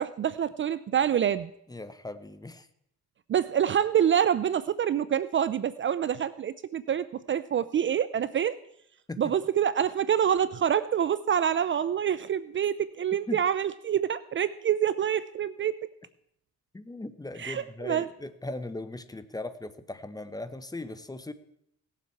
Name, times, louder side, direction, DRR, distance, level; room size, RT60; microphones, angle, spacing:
voice 1, 0.0-1.5 3.3-8.6 9.2-15.8 17.4-18.1, right 9 dB, 40° right, 16 dB, 0.4 m, -26 dB
voice 2, 1.7-2.7 9.1-9.2 13.3-13.4 16.7-21.3, left 2 dB, 10° left, 12 dB, 0.9 m, -38 dB
18.0 x 7.3 x 4.6 m, 0.73 s
cardioid pair, 90°, 30 cm